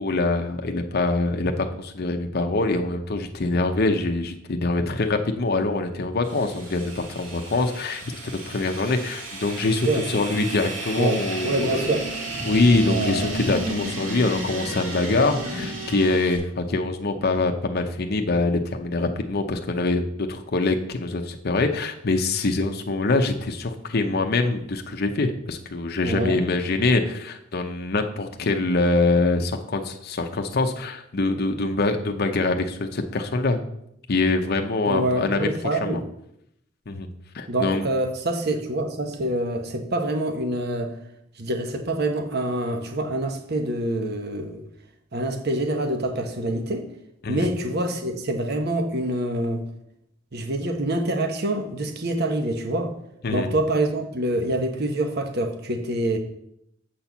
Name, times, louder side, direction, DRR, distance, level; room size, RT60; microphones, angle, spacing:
voice 1, 0.0-12.0 12.4-33.6 34.1-36.0 36.9-37.1 37.3-37.8 47.2-47.5 53.2-53.5, left 2 dB, 50° left, 5 dB, 0.7 m, -24 dB
sound 1, 6.2-16.4, right 2 dB, 75° right, 2.4 m, -33 dB
voice 2, 11.0-12.0 12.8-13.3 26.0-26.4 34.9-36.0 37.5-40.9 41.4-44.6 45.1-46.9 47.3-49.6 50.3-52.9 53.3-56.2, right 1 dB, 55° right, 5 dB, 1.1 m, -26 dB
7.7 x 4.4 x 7.0 m, 0.76 s
head